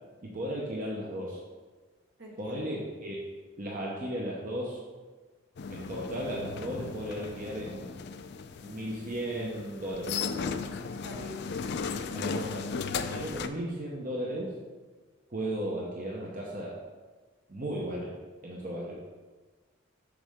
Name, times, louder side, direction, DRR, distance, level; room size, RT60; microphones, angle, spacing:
voice 1, 0.2-1.4 2.4-3.2 3.6-4.8 5.7-8.1 8.6-10.6 12.1-12.6 13.1-14.5 15.3-16.8 17.5-18.1 18.4-19.0, right 1 dB, 45° right, -4 dB, 0.9 m, -35 dB
voice 2, 2.2-2.7 10.8-12.2, equal, 65° right, -1 dB, 1.5 m, -46 dB
sound 1, 5.6-13.5, left 5 dB, 55° left, 0.4 m, -36 dB
6.9 x 6.5 x 3.6 m, 1.4 s
head